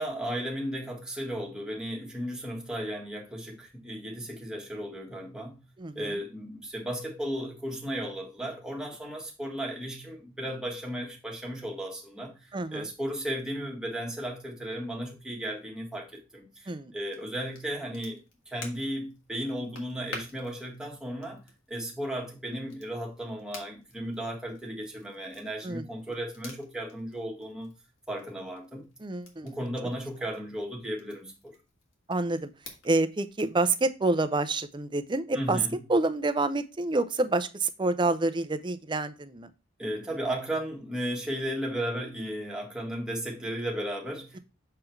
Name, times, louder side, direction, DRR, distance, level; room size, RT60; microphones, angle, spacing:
voice 1, 0.0-5.6 5.9-18.2 18.5-21.4 21.7-27.7 28.1-28.8 29.4-31.6 35.3-35.8 39.8-44.4, equal, 5° right, 1.5 m, -35 dB
voice 2, 5.8-6.2 12.5-12.9 16.7-16.9 25.6-25.9 29.0-29.6 32.1-32.5 32.8-35.6 35.9-39.5, right 2 dB, 25° right, 0.5 m, -28 dB
Crackle, 17.0-33.6, left 3 dB, 70° left, 1.9 m, -51 dB
6.6 x 3.8 x 4.4 m
head